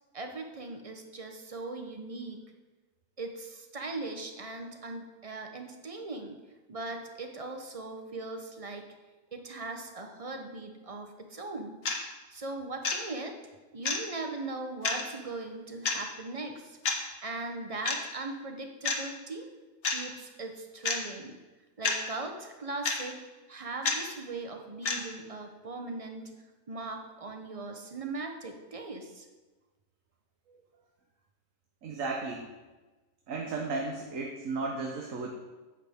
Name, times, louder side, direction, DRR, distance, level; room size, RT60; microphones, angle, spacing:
voice 1, 0.1-2.4 3.2-6.4 6.7-8.8 9.3-11.8 12.3-13.4 13.7-16.8 17.2-19.5 19.9-21.4 21.8-23.2 23.5-26.3 26.7-29.3, right 3 dB, 30° right, 5 dB, 0.8 m, -39 dB
sound 1, 11.8-12.0 12.8-13.0 13.8-14.0 14.8-15.0 15.8-16.0 16.8-17.0 17.8-18.0 18.8-19.0 19.8-20.0 20.8-21.0 21.8-22.0 22.8-23.0 23.8-24.0 24.8-25.0, left 4 dB, 50° left, 1.2 m, -28 dB
voice 2, 31.8-32.4 33.3-35.3, right 3 dB, 70° right, 0 dB, 1.4 m, -34 dB
9.7 x 8.1 x 3.6 m, 1.2 s
omnidirectional pair, 1.4 m